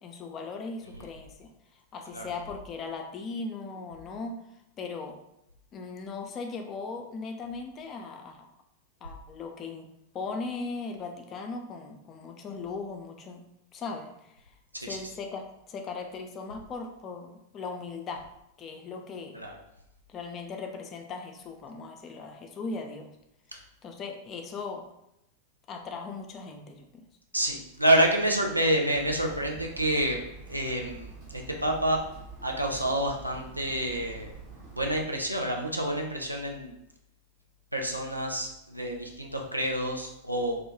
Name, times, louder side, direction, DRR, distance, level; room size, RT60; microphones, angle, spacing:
voice 1, 0.0-4.4 4.8-5.2 5.7-8.5 9.0-9.9 10.1-13.4 13.7-14.4 14.8-18.2 18.6-19.4 20.1-23.1 23.8-24.9 25.7-27.0, left 4 dB, 30° left, 3 dB, 0.4 m, -38 dB
voice 2, 27.3-30.2 30.5-32.0 32.4-34.3 34.8-36.7 37.7-40.6, right 1 dB, 85° right, 1 dB, 0.4 m, -28 dB
Hammer, 28.9-35.0, right 3 dB, 45° right, 0.8 m, -46 dB
2.2 x 2.1 x 2.9 m, 0.82 s
figure-of-eight pair, 90°, 0 cm